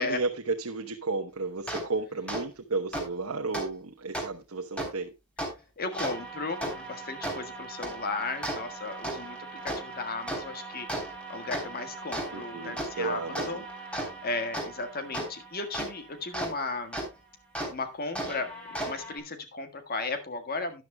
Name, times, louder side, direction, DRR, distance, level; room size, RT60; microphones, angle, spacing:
voice 1, 0.0-5.1 12.3-13.6, right 3 dB, 65° right, 1.0 m, -33 dB
sound 1, 1.7-1.8 2.3-2.4 2.9-3.0 3.5-3.6 4.1-4.2 4.8-4.9 5.4-5.5 5.9-16.5 16.9-17.1 17.5-17.7 18.1-19.2, right 1 dB, 5° left, 3.5 m, -36 dB
voice 2, 5.8-10.9 11.3-13.6 14.2-17.0 17.7-18.5 18.8-20.8, left 3 dB, 45° left, 1.6 m, -35 dB
12.5 x 10.5 x 2.2 m
head